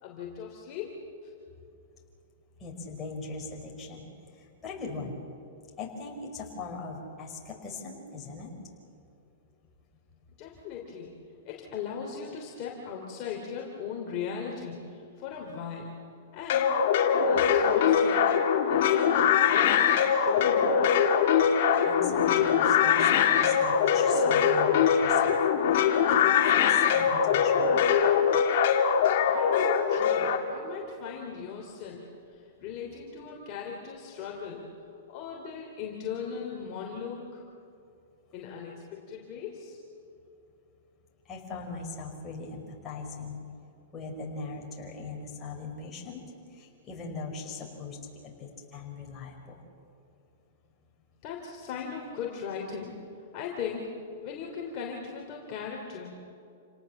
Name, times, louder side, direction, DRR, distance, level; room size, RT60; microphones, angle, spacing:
voice 1, 0.0-1.0 1.2-1.3 10.4-11.1 11.4-15.9 16.3-16.7 17.1-18.3 18.7-20.7 29.3-34.7 35.1-37.4 38.3-39.8 51.2-52.9 53.3-53.9 54.2-56.1, left 6 dB, 40° left, -1 dB, 3.2 m, -38 dB
voice 2, 2.6-4.1 4.3-5.2 5.8-8.5 21.8-25.4 25.8-27.8 41.2-43.4 43.9-46.2 46.5-49.6, left 3 dB, 20° left, -1 dB, 5.0 m, -40 dB
sound 1, 16.5-30.4, left 7 dB, 55° left, 2.8 m, -23 dB
28.5 x 18.5 x 7.3 m, 2.6 s
hypercardioid pair, 145°, 0 cm